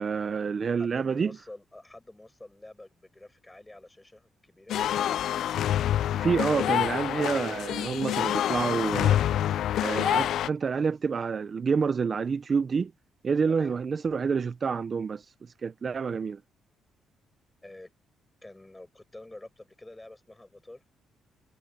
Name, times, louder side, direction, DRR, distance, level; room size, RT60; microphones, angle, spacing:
voice 1, 0.0-1.4 6.0-9.2 9.8-12.9 13.2-16.4, right 5 dB, 40° right, 0.8 m, -28 dB
voice 2, 0.8-4.8 13.5-13.8 17.6-17.9 18.4-20.8, left 2 dB, 15° left, 7.0 m, -48 dB
sound 1, 4.7-10.5, left 11 dB, 75° left, 0.3 m, -27 dB
cardioid pair, 90°, 0 cm